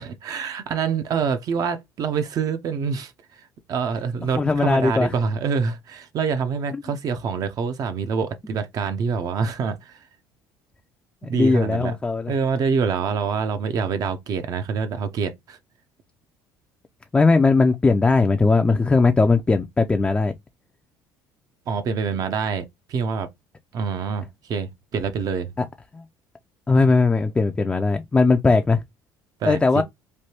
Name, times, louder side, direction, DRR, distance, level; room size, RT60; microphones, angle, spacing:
voice 1, 0.0-3.1 3.4-10.0 11.2-12.0 12.3-15.6 21.7-23.3 23.7-25.5 29.4-29.8, right 5 dB, 50° right, 0.5 m, -26 dB
voice 2, 4.3-5.1 6.7-6.8 8.5-8.6 11.3-12.3 17.1-20.3 25.6-25.7 25.9-26.0 26.7-28.8 29.4-29.8, left 3 dB, 15° left, 0.4 m, -19 dB
3.2 x 2.2 x 2.8 m
cardioid pair, 100°, 8 cm